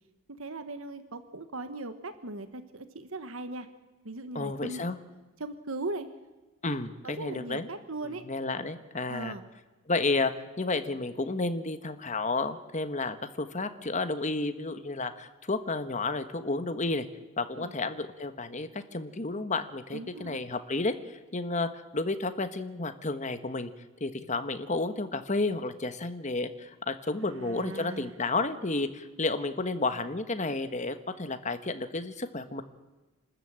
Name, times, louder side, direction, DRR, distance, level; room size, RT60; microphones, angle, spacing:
voice 1, 0.4-3.7 4.0-4.8 5.4-6.1 6.6-8.2 9.1-9.4 17.5-17.7 19.9-20.4 27.2-28.2, right 2 dB, 70° right, 10 dB, 1.3 m, -39 dB
voice 2, 4.3-5.0 6.6-7.7 8.3-9.3 9.9-10.3 10.6-17.1 17.4-23.7 24.0-32.6, left 3 dB, 35° left, 10 dB, 1.3 m, -31 dB
27.0 x 13.5 x 8.8 m, 1.2 s
head